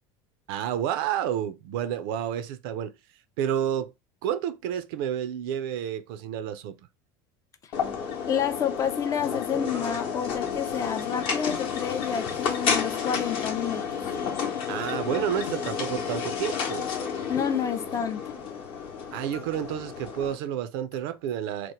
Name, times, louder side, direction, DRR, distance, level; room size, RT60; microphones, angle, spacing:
voice 1, 0.5-2.9 3.4-3.9 4.2-6.8 14.7-16.9 19.1-21.7, right 9 dB, 75° right, 0.5 m, -30 dB
sound 1, 7.7-20.4, left 6 dB, 45° left, 0.8 m, -31 dB
voice 2, 8.3-13.8 17.3-18.2, left 8 dB, 30° left, 0.4 m, -29 dB
2.9 x 2.1 x 2.9 m
supercardioid pair, 130°, 12 cm